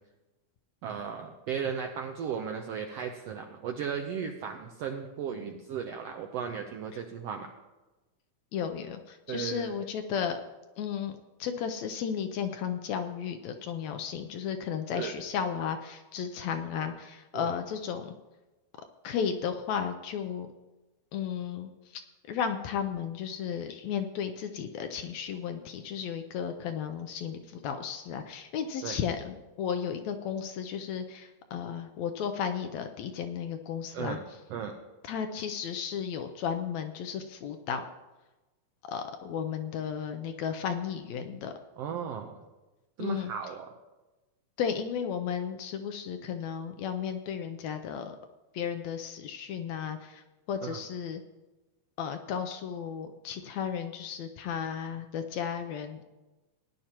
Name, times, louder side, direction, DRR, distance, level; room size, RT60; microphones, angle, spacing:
voice 1, 0.8-7.5 9.3-9.7 14.9-15.1 17.3-17.5 28.8-29.0 33.9-34.2 34.5-34.8 41.8-42.4 43.0-43.7 50.6-50.8, right 7 dB, 85° right, 4 dB, 1.4 m, -36 dB
voice 2, 8.5-10.4 10.8-18.1 19.0-20.5 21.1-22.0 22.3-34.2 35.0-37.8 38.9-41.5 43.0-43.3 44.6-48.2 48.5-51.2 52.0-56.0, left 7 dB, 75° left, 7 dB, 1.7 m, -34 dB
17.5 x 10.5 x 2.9 m, 1.1 s
omnidirectional pair, 3.6 m